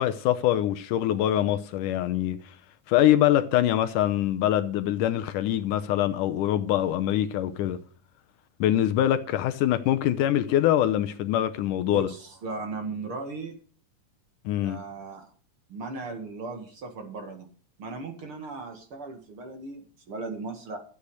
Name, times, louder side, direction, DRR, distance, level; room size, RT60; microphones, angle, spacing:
voice 1, 0.0-2.5 2.9-7.8 8.6-12.1 14.5-14.8, left 12 dB, 75° left, 2.2 m, -24 dB
voice 2, 11.9-13.5 14.6-15.3 15.7-17.5 17.8-20.8, right 3 dB, 45° right, 2.5 m, -37 dB
13.0 x 8.5 x 6.4 m
omnidirectional pair, 3.9 m